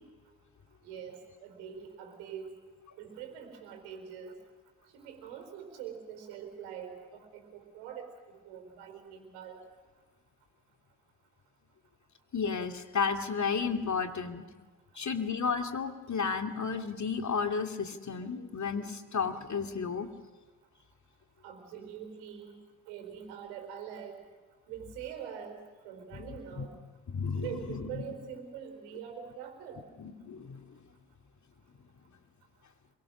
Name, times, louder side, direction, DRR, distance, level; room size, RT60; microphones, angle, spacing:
voice 1, 0.8-2.6 3.0-4.4 4.9-9.6 21.4-22.6 22.9-24.2 24.7-26.7 27.4-29.8, right 8 dB, 80° right, 5 dB, 4.2 m, -44 dB
voice 2, 12.3-14.5 15.0-20.1 26.1-26.7 27.1-28.0 30.0-30.7, left 5 dB, 40° left, 6 dB, 2.5 m, -33 dB
26.5 x 23.0 x 6.3 m, 1.4 s
hypercardioid pair, 50°, 43 cm